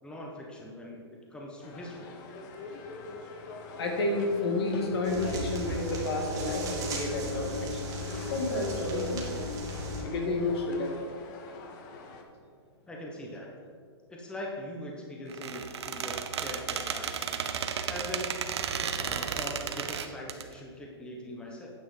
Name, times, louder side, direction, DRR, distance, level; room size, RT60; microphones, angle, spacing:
voice 1, 0.0-1.0 1.3-2.1 12.9-13.5 14.1-17.3 17.9-18.3 19.0-21.7, left 1 dB, 5° left, -2 dB, 1.1 m, -41 dB
sound 1, 1.6-12.2, left 3 dB, 45° left, 1.1 m, -44 dB
voice 2, 3.8-7.9 8.3-9.2 10.0-11.0, left 2 dB, 65° left, 2 dB, 1.8 m, -30 dB
sound 2, 5.0-10.0, equal, 25° right, 1.9 m, -36 dB
Squeak, 15.3-20.4, right 7 dB, 75° right, 0.7 m, -33 dB
9.2 x 5.5 x 4.9 m, 2.2 s
hypercardioid pair, 135°, 14 cm